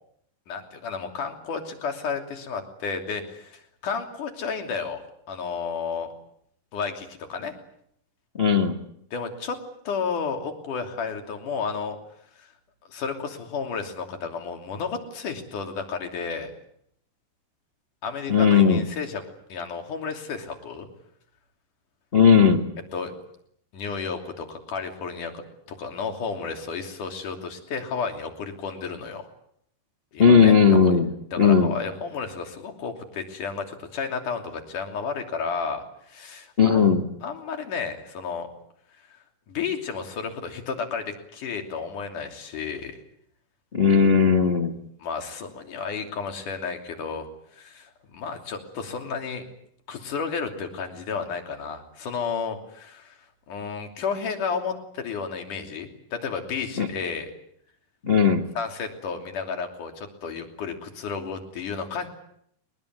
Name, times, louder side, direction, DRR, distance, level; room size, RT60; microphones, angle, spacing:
voice 1, 0.5-5.0 5.3-6.1 6.7-7.5 9.1-9.6 9.9-12.0 12.4-12.5 12.9-16.5 18.0-19.2 19.5-20.9 22.9-23.1 23.7-29.3 30.1-30.5 31.3-36.9 37.2-38.5 39.5-43.0 45.0-47.3 47.6-49.4 49.9-53.1 53.5-57.3 58.6-62.1, left 5 dB, 70° left, 4 dB, 4.6 m, -32 dB
voice 2, 8.4-8.8 18.3-18.8 22.1-22.7 30.2-31.1 31.4-31.7 36.6-37.0 43.7-44.7 56.8-56.9 58.0-58.5, left 6 dB, 35° left, 4 dB, 0.9 m, -17 dB
23.0 x 20.0 x 9.5 m, 0.72 s
omnidirectional pair, 3.8 m